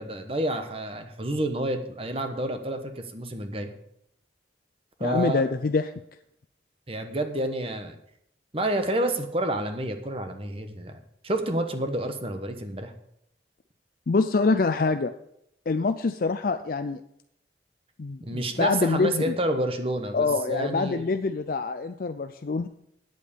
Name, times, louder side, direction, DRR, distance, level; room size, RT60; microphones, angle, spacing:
voice 1, 0.0-3.7 5.0-5.4 6.9-7.9 8.5-11.0 11.2-12.9 18.2-21.0, right 1 dB, 30° right, 7 dB, 1.1 m, -29 dB
voice 2, 5.0-5.8 14.1-15.1 15.7-17.0 18.0-19.2 20.1-22.7, left 4 dB, 50° left, 9 dB, 0.4 m, -25 dB
9.3 x 8.2 x 6.8 m, 0.75 s
head